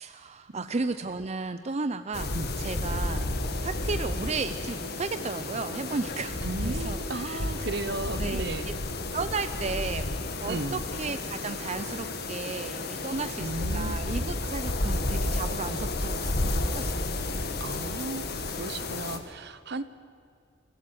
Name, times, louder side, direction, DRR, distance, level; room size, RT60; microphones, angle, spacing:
voice 1, 0.0-3.3 3.6-7.4 8.2-8.7 9.1-10.1 10.4-17.0, right 4 dB, 35° right, 10 dB, 0.5 m, -34 dB
sound 1, 2.1-19.2, left 2 dB, 55° left, 1.7 m, -32 dB
voice 2, 6.4-8.7 10.4-10.8 13.4-14.2 17.6-18.3 18.5-19.8, right 2 dB, 60° right, 13 dB, 1.0 m, -35 dB
28.5 x 16.0 x 7.8 m, 2.2 s
head